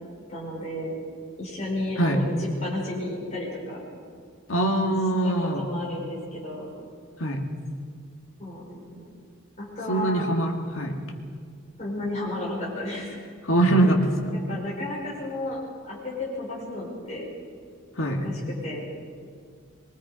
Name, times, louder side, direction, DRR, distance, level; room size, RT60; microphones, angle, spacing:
voice 1, 0.3-0.9 1.4-3.8 5.2-6.7 8.4-9.1 9.6-10.2 11.8-13.3 14.3-15.6 15.8-17.3 18.0-18.3 18.6-18.8, left 1 dB, 35° left, -6 dB, 5.5 m, -33 dB
voice 2, 4.5-5.7 7.2-7.4 9.9-11.0 13.4-14.3 18.0-18.2, right 1 dB, 70° left, 2 dB, 2.3 m, -23 dB
23.5 x 23.0 x 5.1 m, 2.1 s
head